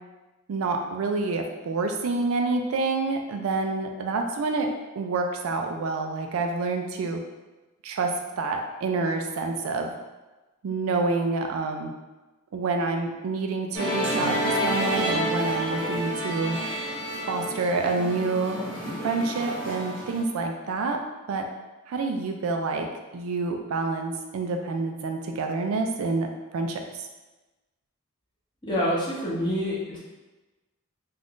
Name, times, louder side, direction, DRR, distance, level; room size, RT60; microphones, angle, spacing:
voice 1, 0.5-4.7 5.0-7.2 7.8-9.9 10.6-11.9 12.5-16.6 17.3-18.6 19.0-21.0 21.3-21.4 21.9-22.9 23.1-26.3 26.5-27.1, right 3 dB, 80° right, 4 dB, 0.4 m, -28 dB
Musical instrument, 13.7-20.2, equal, 25° right, 0.9 m, -29 dB
voice 2, 28.6-30.0, equal, 20° left, -7 dB, 0.7 m, -27 dB
2.5 x 2.3 x 3.5 m, 1.1 s
head